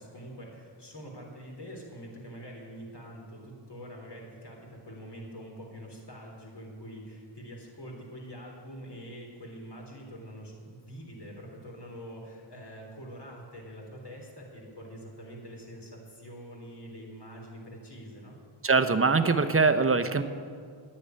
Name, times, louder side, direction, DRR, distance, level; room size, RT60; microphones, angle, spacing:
voice 1, 0.0-18.4, equal, 55° left, -1 dB, 3.9 m, -45 dB
voice 2, 18.6-20.2, right 4 dB, 25° right, 9 dB, 0.8 m, -23 dB
10.0 x 8.9 x 9.6 m, 2.1 s
cardioid pair, 65°, 49 cm